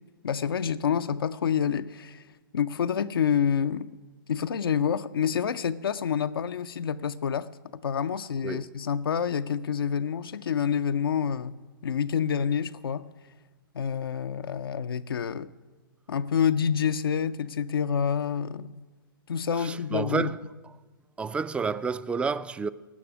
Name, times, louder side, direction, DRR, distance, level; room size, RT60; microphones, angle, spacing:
voice 1, 0.2-2.3 2.5-3.9 4.3-7.5 7.8-11.6 11.8-13.1 13.7-15.5 16.1-18.7 19.3-20.3, left 7 dB, 85° left, 0.5 m, -27 dB
voice 2, 8.4-8.8 19.6-20.4 21.2-22.7, right 5 dB, 10° right, 0.4 m, -30 dB
17.0 x 6.0 x 9.9 m
hypercardioid pair, 120°, 12 cm